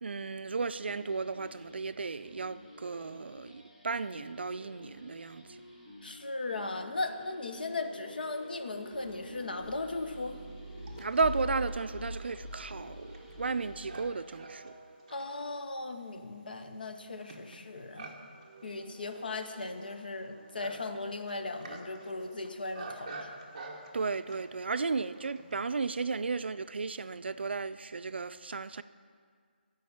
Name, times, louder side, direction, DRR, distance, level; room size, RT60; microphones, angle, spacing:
voice 1, 0.0-5.4 11.0-14.7 23.9-28.8, right 4 dB, 75° right, 0.4 m, -34 dB
sound 1, 0.9-14.1, left 1 dB, 30° left, 1.4 m, -46 dB
voice 2, 6.0-10.4 15.1-18.1 18.6-23.3, left 3 dB, 55° left, 0.8 m, -37 dB
Livestock farm animals working animals, 8.9-9.0 9.7-25.6, right 2 dB, 30° right, 1.0 m, -49 dB
11.0 x 5.1 x 7.1 m
hypercardioid pair, 180°, 6 cm